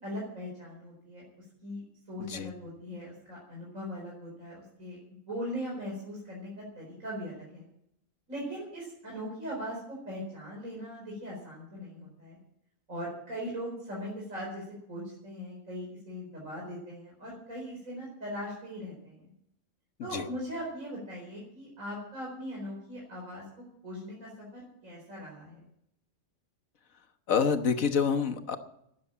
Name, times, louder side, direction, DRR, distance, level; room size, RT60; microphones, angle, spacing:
voice 1, 0.0-7.6 8.3-12.4 12.9-19.3 20.0-25.6, equal, 80° right, -4 dB, 5.1 m, -40 dB
voice 2, 2.2-2.5 20.1-20.2 27.3-28.6, left 6 dB, 90° left, 8 dB, 1.6 m, -27 dB
12.5 x 10.5 x 8.6 m, 0.75 s
omnidirectional pair, 1.4 m